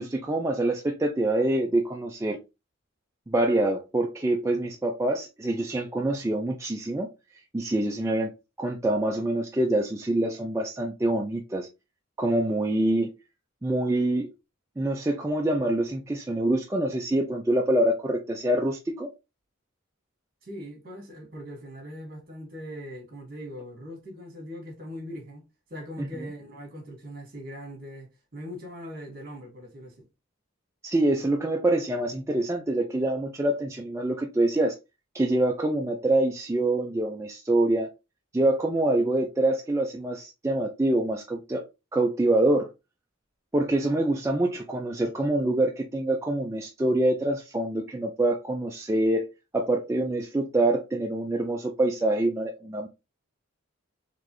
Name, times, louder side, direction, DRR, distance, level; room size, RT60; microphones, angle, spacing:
voice 1, 0.0-2.4 3.3-8.3 8.6-11.7 12.2-13.1 13.6-14.3 14.8-19.1 26.0-26.1 30.8-34.7 35.1-37.9 38.3-41.6 41.9-42.7 43.5-49.3 49.5-52.9, right 1 dB, 15° right, 0.4 m, -25 dB
voice 2, 20.4-30.1, equal, 45° right, 1.7 m, -41 dB
4.0 x 3.2 x 3.0 m
head